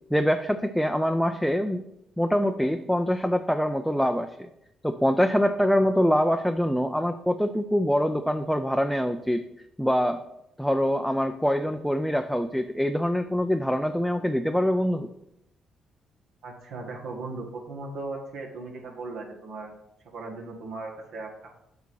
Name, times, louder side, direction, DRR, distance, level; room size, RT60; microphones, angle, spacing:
voice 1, 0.1-1.8 2.2-4.5 4.8-9.4 9.8-10.2 10.6-15.1, equal, ahead, 6 dB, 0.4 m, -24 dB
voice 2, 16.4-19.7 20.1-21.6, right 3 dB, 75° right, -1 dB, 1.7 m, -37 dB
8.2 x 2.9 x 6.2 m, 0.83 s
cardioid pair, 90°, 0 cm